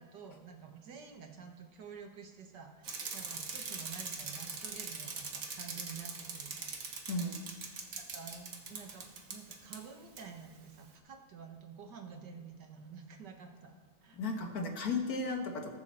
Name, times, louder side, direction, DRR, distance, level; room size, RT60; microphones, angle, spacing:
voice 1, 0.0-6.7 7.0-7.1 8.0-13.8 14.0-14.2, right 6 dB, 80° right, 4 dB, 1.9 m, -50 dB
Bicycle, 2.8-9.8 10.2-10.3, right 4 dB, 55° right, 1.6 m, -42 dB
voice 2, 7.1-7.5 14.1-15.8, left 3 dB, 60° left, 3 dB, 1.7 m, -35 dB
20.5 x 7.0 x 4.3 m, 1.3 s
omnidirectional pair, 1.8 m